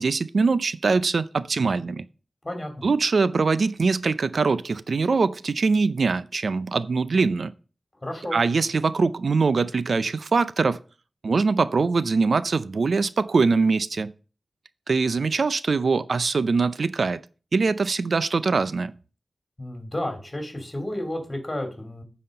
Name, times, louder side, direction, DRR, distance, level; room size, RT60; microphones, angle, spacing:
voice 1, 0.0-2.0 2.8-7.5 8.3-10.8 11.2-14.1 14.9-17.2 17.5-18.9, right 4 dB, 75° right, 0.5 m, -23 dB
voice 2, 8.0-8.4 19.6-22.0, left 1 dB, 25° left, 3.0 m, -31 dB
9.2 x 4.3 x 6.6 m
wide cardioid pair, 75°, 0 cm